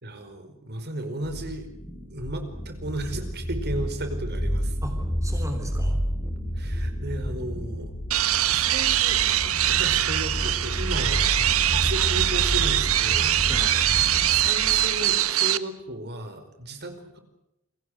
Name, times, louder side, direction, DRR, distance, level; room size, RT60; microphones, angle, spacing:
voice 1, 0.0-1.7 2.1-4.8 6.6-7.9 8.5-13.3 14.3-17.2, right 1 dB, 50° right, 8 dB, 4.9 m, -35 dB
sound 1, 1.2-15.2, equal, 10° left, 4.2 m, -31 dB
sound 2, 4.2-14.5, left 1 dB, 60° left, 1.3 m, -38 dB
voice 2, 4.8-6.0 13.2-14.1, equal, 15° right, 5 dB, 3.5 m, -37 dB
sound 3, 8.1-15.6, right 13 dB, 80° right, 1.3 m, -23 dB
29.5 x 23.5 x 6.6 m, 0.86 s
head